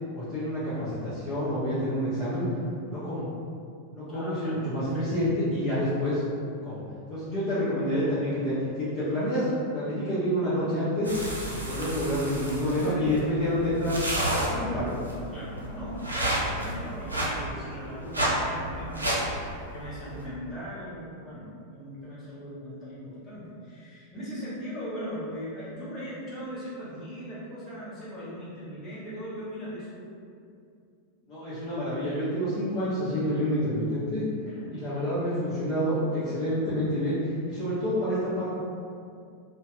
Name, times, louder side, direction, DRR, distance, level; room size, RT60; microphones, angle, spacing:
voice 1, 0.1-2.4 2.8-3.3 3.9-6.2 6.6-6.8 7.1-11.2 11.5-14.0 14.3-15.0 31.3-34.2 34.7-38.5, equal, 35° left, -13 dB, 0.9 m, -28 dB
voice 2, 4.1-4.6 4.9-5.2 12.8-13.2 13.5-13.8 15.3-30.1 34.4-34.7, equal, 15° left, -11 dB, 1.3 m, -39 dB
sound 1, 11.0-20.2, right 1 dB, 80° right, 0.5 m, -31 dB
2.7 x 2.1 x 3.2 m, 2.4 s
figure-of-eight pair, 90°, 0 cm